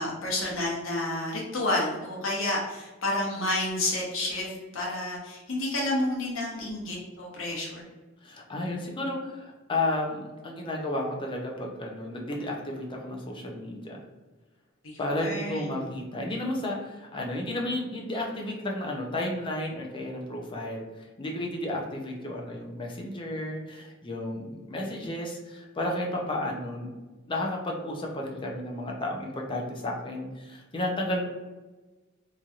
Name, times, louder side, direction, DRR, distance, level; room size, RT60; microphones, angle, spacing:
voice 1, 0.0-7.8 14.8-15.8, left 1 dB, 85° left, -3 dB, 0.9 m, -30 dB
voice 2, 8.2-14.0 15.0-26.9 27.3-31.3, left 1 dB, 25° left, -1 dB, 0.5 m, -32 dB
3.0 x 2.7 x 2.3 m, 1.2 s
head